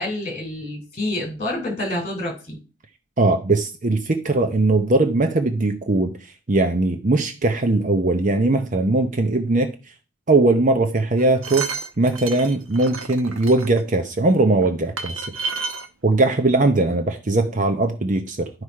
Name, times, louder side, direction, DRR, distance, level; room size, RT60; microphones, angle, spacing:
voice 1, 0.0-2.6, left 1 dB, 30° left, 3.3 m, -28 dB
voice 2, 3.2-9.7 10.3-11.7 12.0-15.4 16.0-18.5, right 2 dB, 40° right, 0.7 m, -20 dB
sound 1, 11.2-13.8 14.6-14.7 15.0-15.9 16.6-16.7 16.9-17.0, right 4 dB, 75° right, 1.1 m, -31 dB
11.5 x 4.9 x 4.8 m
head